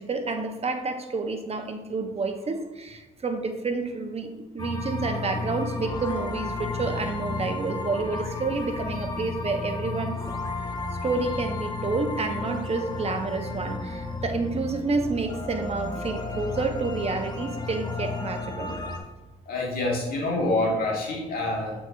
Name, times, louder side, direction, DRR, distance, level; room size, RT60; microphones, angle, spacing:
voice 1, 0.0-10.2 11.0-18.7, right 3 dB, 40° right, 6 dB, 1.0 m, -29 dB
sound 1, 4.6-19.0, left 3 dB, 25° left, 1.3 m, -33 dB
voice 2, 19.5-21.7, left 2 dB, 65° left, -2 dB, 1.9 m, -26 dB
7.9 x 4.8 x 2.6 m, 1.2 s
hypercardioid pair, 55°, 17 cm